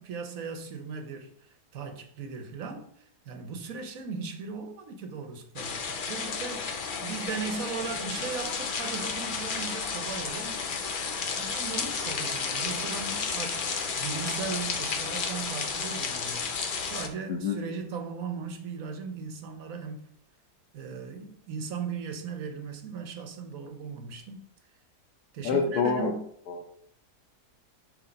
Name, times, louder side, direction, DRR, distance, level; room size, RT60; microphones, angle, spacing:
voice 1, 0.0-10.6 11.3-16.5 16.8-20.0 20.7-24.4 25.3-26.2, right 5 dB, 60° right, 1.3 m, -38 dB
sound 1, 5.6-17.1, left 5 dB, 55° left, 0.5 m, -32 dB
voice 2, 25.4-26.1 26.5-26.6, left 5 dB, 75° left, 1.4 m, -26 dB
6.2 x 3.3 x 5.2 m
omnidirectional pair, 1.7 m